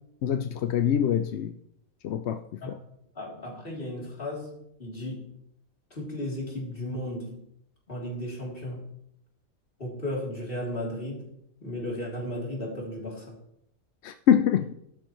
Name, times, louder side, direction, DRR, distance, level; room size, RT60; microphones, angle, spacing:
voice 1, 0.2-1.5 2.0-2.4 2.7-2.8 14.0-14.7, left 9 dB, 65° left, 0.7 m, -24 dB
voice 2, 3.2-4.5 4.8-5.4 5.9-7.4 7.9-8.9 9.8-11.3 11.6-13.4, left 1 dB, 40° left, 3.4 m, -35 dB
13.5 x 12.0 x 3.1 m
omnidirectional pair, 1.5 m